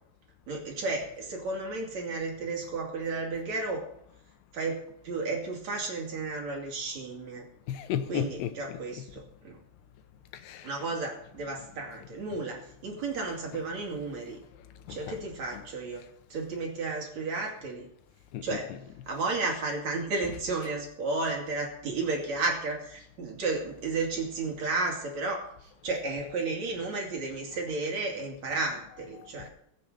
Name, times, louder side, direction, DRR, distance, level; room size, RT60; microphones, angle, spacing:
voice 1, 0.5-3.9 4.5-7.5 8.1-9.6 10.6-14.4 14.9-16.0 16.3-17.9 18.4-18.7 19.1-29.5, right 3 dB, 50° right, 3.4 m, -33 dB
voice 2, 7.7-9.1 10.3-10.9 12.3-12.4 13.5-13.6 14.9-15.2 15.5-15.7 18.3-18.9 20.2-20.4 28.5-29.5, left 10 dB, 85° left, 3.0 m, -37 dB
21.5 x 7.7 x 5.6 m
omnidirectional pair, 4.6 m